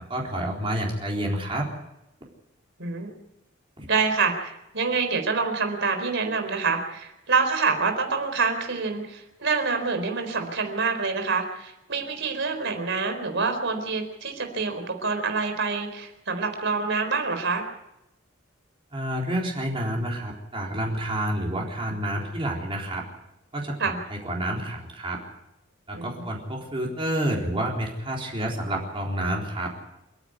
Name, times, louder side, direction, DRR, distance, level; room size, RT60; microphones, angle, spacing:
voice 1, 0.1-1.7 3.8-3.9 18.9-23.0 23.5-25.2 25.9-29.7, right 1 dB, 25° right, -2 dB, 4.0 m, -29 dB
voice 2, 2.8-3.1 3.9-17.6 23.8-24.0 25.9-26.3, right 4 dB, 60° right, 5 dB, 4.2 m, -26 dB
28.5 x 10.0 x 9.7 m, 0.90 s
head